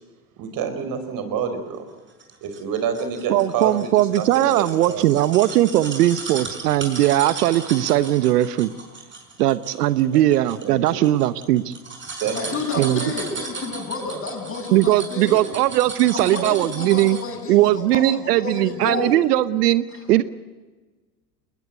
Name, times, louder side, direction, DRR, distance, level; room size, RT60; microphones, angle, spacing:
voice 1, 0.4-1.9 2.4-5.1 10.6-11.0 12.2-12.6, right 6 dB, 45° right, 8 dB, 4.7 m, -28 dB
sound 1, 2.2-17.4 17.8-17.9, right 4 dB, 25° right, 5.8 m, -36 dB
voice 2, 3.3-8.7 9.4-11.7 12.8-13.1 14.7-17.2 17.5-20.2, right 14 dB, 75° right, 15 dB, 1.1 m, -19 dB
voice 3, 12.3-15.4 16.1-19.2, left 3 dB, 25° left, 3 dB, 7.6 m, -30 dB
21.5 x 20.5 x 8.1 m, 1.3 s
hypercardioid pair, 100°, 47 cm